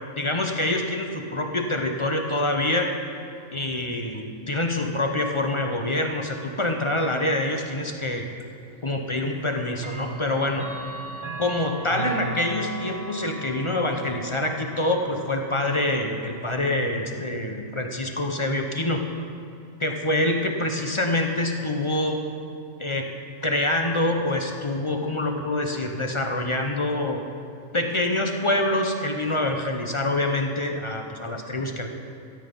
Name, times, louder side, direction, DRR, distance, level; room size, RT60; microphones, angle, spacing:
voice 1, 0.2-3.0 3.5-8.3 8.8-10.7 11.4-19.0 19.8-22.2 22.8-23.1 23.4-27.2 27.7-31.9, left 1 dB, 30° left, 3 dB, 0.6 m, -26 dB
Clock, 8.4-8.5 9.8-16.5, right 2 dB, 25° right, 0.9 m, -37 dB
13.5 x 9.1 x 5.2 m, 2.4 s
omnidirectional pair, 1.4 m